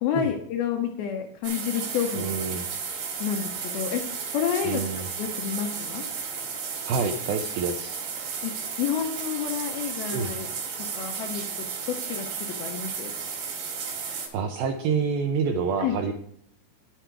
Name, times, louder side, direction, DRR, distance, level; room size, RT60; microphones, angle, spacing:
voice 1, 0.0-2.2 3.2-4.0 4.3-4.8 5.2-6.1 8.4-8.5 8.8-10.5 11.0-13.1 15.8-16.0, left 8 dB, 80° left, 3 dB, 2.3 m, -29 dB
sound 1, 1.4-14.3, right 6 dB, 65° right, 3.5 m, -33 dB
voice 2, 2.2-2.7 4.6-5.1 6.8-8.0 10.1-10.3 14.3-16.1, right 5 dB, 80° right, 4 dB, 2.2 m, -27 dB
10.0 x 7.6 x 4.5 m, 0.66 s
omnidirectional pair, 5.1 m